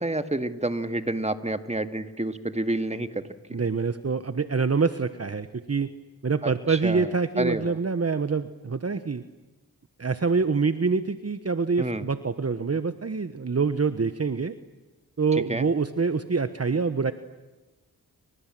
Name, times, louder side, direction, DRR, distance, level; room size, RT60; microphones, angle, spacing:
voice 1, 0.0-3.2 3.5-3.7 6.4-7.8 11.8-12.0 15.5-15.7, right 2 dB, 20° right, 9 dB, 2.0 m, -29 dB
voice 2, 3.5-5.9 6.2-9.2 10.0-14.5 15.2-17.1, right 4 dB, 40° right, 11 dB, 1.2 m, -26 dB
30.0 x 25.0 x 7.7 m, 1.2 s
cardioid pair, 55°, 37 cm